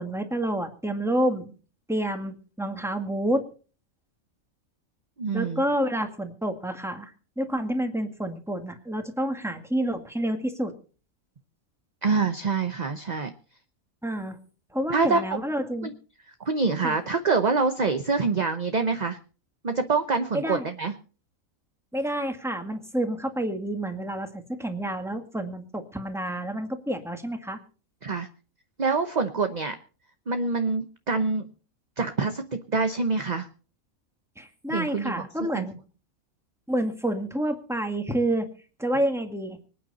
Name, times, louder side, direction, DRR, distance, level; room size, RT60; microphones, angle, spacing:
voice 1, 0.0-1.5 1.9-3.4 5.3-10.7 14.0-14.4 14.7-15.9 16.8-17.0 20.3-20.7 21.9-27.6 34.4-35.8 36.7-38.5 38.8-39.6, right 1 dB, ahead, 5 dB, 1.8 m, -29 dB
voice 2, 5.2-5.6 12.0-13.3 14.9-15.2 15.8-15.9 16.4-19.2 19.6-20.9 28.0-28.3 28.8-29.8 30.3-31.5 32.0-33.5 34.7-35.2 35.5-35.7, right 4 dB, 35° right, 7 dB, 0.9 m, -25 dB
25.0 x 9.2 x 4.1 m, 0.39 s
omnidirectional pair, 1.5 m